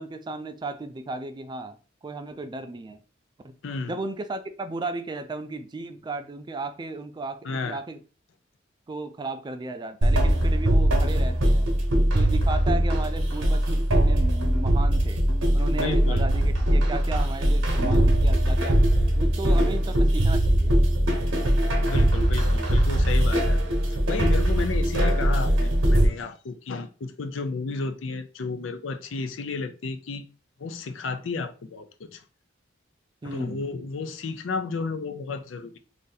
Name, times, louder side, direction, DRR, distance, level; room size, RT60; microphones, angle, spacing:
voice 1, 0.0-3.0 3.4-3.5 3.9-8.0 8.9-11.7 12.1-15.2 15.5-18.8 19.2-20.8 33.2-33.6, right 2 dB, 25° right, 0.3 m, -35 dB
voice 2, 3.6-4.0 7.4-7.8 15.7-16.3 21.8-30.2 30.6-32.2 33.2-35.8, left 4 dB, 75° left, 0.5 m, -32 dB
sound 1, 10.0-26.1, right 1 dB, 80° right, 0.9 m, -21 dB
2.7 x 2.6 x 3.9 m
head